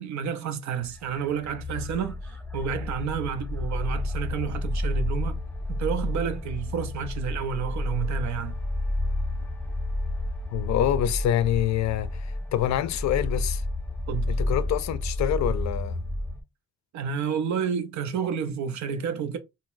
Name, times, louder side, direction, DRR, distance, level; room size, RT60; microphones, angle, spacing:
voice 1, 0.0-5.4 5.7-8.6 14.1-14.3 16.9-19.4, right 7 dB, 70° right, 0.7 m, -30 dB
sound 1, 0.8-16.4, left 1 dB, 5° left, 0.5 m, -30 dB
voice 2, 10.5-12.1 12.5-13.6 14.3-16.0, left 11 dB, 65° left, 0.5 m, -26 dB
3.9 x 2.1 x 2.4 m
cardioid pair, 90°, 30 cm